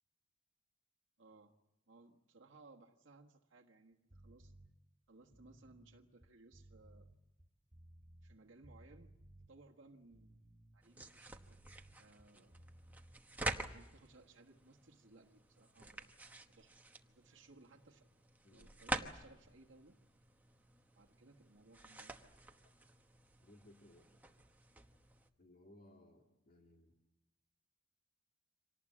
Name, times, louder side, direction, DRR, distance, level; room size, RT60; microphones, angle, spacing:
voice 1, 1.2-1.6 1.9-4.5 5.1-7.1 8.2-9.1 9.5-12.6 13.7-16.2 16.5-18.1 18.5-19.9 20.9-22.1, right 3 dB, 70° right, 0 dB, 1.4 m, -63 dB
sound 1, 4.1-4.7 5.2-8.4 8.6-9.5 10.0-13.2 13.4-13.7, right 1 dB, 30° right, 1.7 m, -60 dB
sound 2, 10.8-25.3, right 2 dB, 10° right, 1.0 m, -48 dB
voice 2, 12.3-12.7 18.4-18.7 22.6-22.7 23.4-24.1 25.4-27.0, left 1 dB, 45° left, 1 dB, 2.0 m, -63 dB
25.5 x 18.5 x 8.6 m, 0.97 s
head